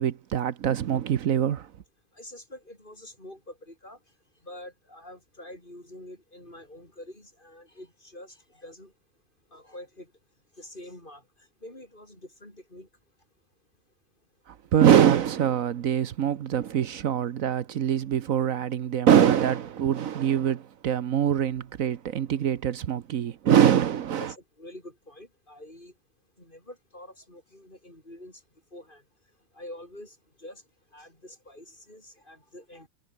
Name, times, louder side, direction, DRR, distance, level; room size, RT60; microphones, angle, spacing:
voice 1, 0.0-1.7 14.7-24.3, right 9 dB, 75° right, 1.3 m, -23 dB
voice 2, 2.1-4.0 4.4-8.9 9.5-10.1 10.6-11.2 11.6-12.9 24.2-25.9 26.4-28.4 28.7-29.0 29.5-30.6 30.9-32.9, left 1 dB, 35° left, 7.6 m, -46 dB
omnidirectional pair, 1.5 m